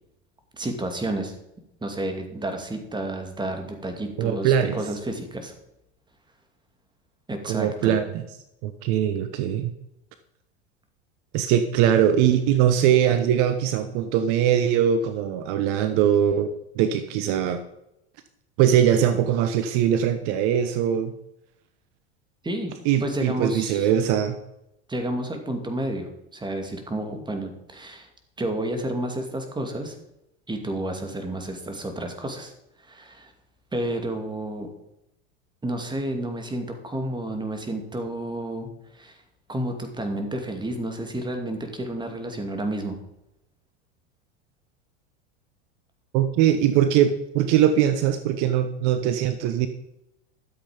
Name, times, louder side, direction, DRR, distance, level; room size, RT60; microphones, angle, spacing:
voice 1, 0.5-1.3 1.8-5.5 7.3-8.0 22.4-22.7 23.0-23.9 24.9-28.1 28.4-29.9 30.5-32.5 32.8-33.3 33.7-34.7 35.6-39.2 39.5-43.0, right 1 dB, 15° right, 5 dB, 2.5 m, -30 dB
voice 2, 4.2-4.8 7.5-8.2 8.6-9.7 11.3-16.5 16.8-17.6 18.6-21.1 22.8-24.4 46.1-49.7, right 9 dB, 55° right, 10 dB, 1.1 m, -21 dB
13.0 x 7.9 x 5.2 m, 0.85 s
hypercardioid pair, 100°, 34 cm